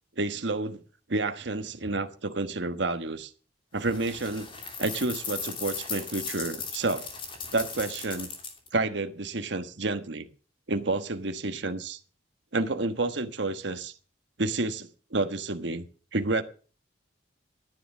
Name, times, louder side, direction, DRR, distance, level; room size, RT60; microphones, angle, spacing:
voice 1, 0.2-0.8 1.1-3.3 3.7-4.5 4.8-7.1 7.5-8.3 8.7-10.3 10.7-12.0 12.5-13.9 14.4-15.8 16.1-16.4, right 2 dB, 70° right, 1.4 m, -29 dB
sound 1, 3.8-8.7, left 5 dB, 25° left, 2.9 m, -37 dB
14.0 x 9.9 x 6.2 m
head